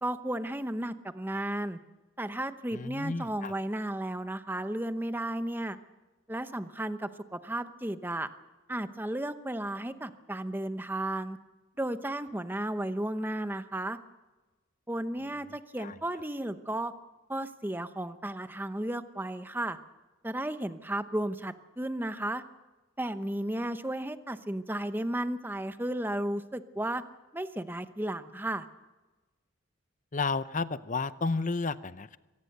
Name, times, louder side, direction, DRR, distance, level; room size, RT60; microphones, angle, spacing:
voice 1, 0.0-1.8 2.2-5.8 6.3-8.3 8.7-11.4 11.8-14.0 14.9-16.9 17.3-19.8 20.2-22.4 23.0-27.0 27.3-28.7, right 1 dB, 10° right, 10 dB, 0.8 m, -34 dB
voice 2, 2.7-3.5 15.8-15.9 30.1-32.2, left 4 dB, 35° left, 14 dB, 0.7 m, -32 dB
24.0 x 18.0 x 6.7 m, 1.2 s
head